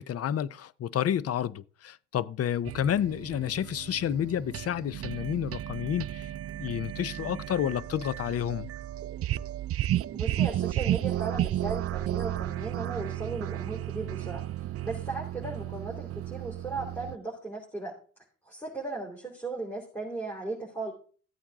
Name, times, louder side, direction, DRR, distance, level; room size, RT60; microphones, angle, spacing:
voice 1, 0.0-6.3 6.6-8.7, left 10 dB, 50° left, 0.6 m, -30 dB
sound 1, 2.6-17.2, right 13 dB, 50° right, 0.4 m, -33 dB
voice 2, 10.1-14.4 14.8-17.9 18.4-20.9, right 3 dB, 5° left, 3.5 m, -36 dB
14.5 x 8.7 x 3.6 m
cardioid pair, 90°, 30 cm